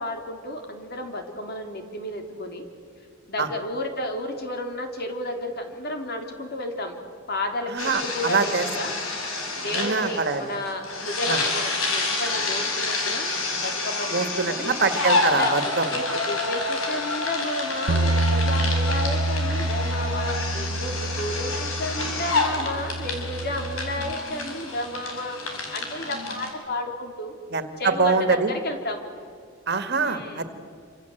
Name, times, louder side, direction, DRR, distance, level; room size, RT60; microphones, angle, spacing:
voice 1, 0.0-2.7 3.3-7.0 7.3-9.0 9.6-13.3 13.6-14.7 15.3-27.3 27.8-29.0 30.0-30.4, left 1 dB, 50° left, 4 dB, 3.6 m, -32 dB
voice 2, 7.7-8.7 9.7-10.4 11.3-11.4 14.1-15.9 27.5-28.5 29.7-30.4, right 4 dB, 55° right, 9 dB, 2.0 m, -24 dB
sound 1, 7.8-26.5, left 3 dB, 90° left, 5.7 m, -28 dB
Bass guitar, 17.9-24.1, right 2 dB, 80° right, 0.8 m, -27 dB
27.5 x 26.0 x 8.1 m, 2.2 s
head